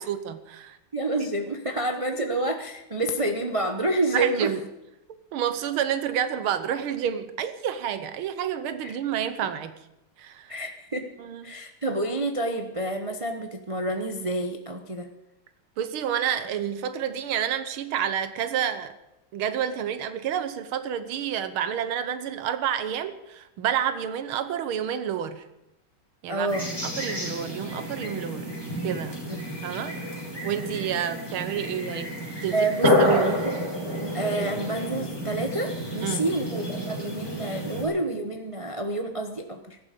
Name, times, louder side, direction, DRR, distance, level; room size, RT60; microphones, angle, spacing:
voice 1, 0.0-0.8 2.2-2.4 4.1-4.6 5.1-9.7 10.2-10.5 11.2-11.4 15.8-19.0 19.3-25.4 26.2-26.5 27.0-28.5 28.8-29.2 29.6-32.1 32.4-32.6 33.0-33.4 36.0-36.3, right 9 dB, 85° right, 12 dB, 1.9 m, -29 dB
voice 2, 0.9-4.5 8.8-9.0 10.5-11.1 11.4-15.1 26.3-26.7 32.5-33.5 34.1-39.8, right 2 dB, 30° right, 5 dB, 0.6 m, -28 dB
sound 1, 26.5-37.8, left 1 dB, 10° left, 4.8 m, -29 dB
18.0 x 14.5 x 5.2 m, 0.91 s
omnidirectional pair, 2.3 m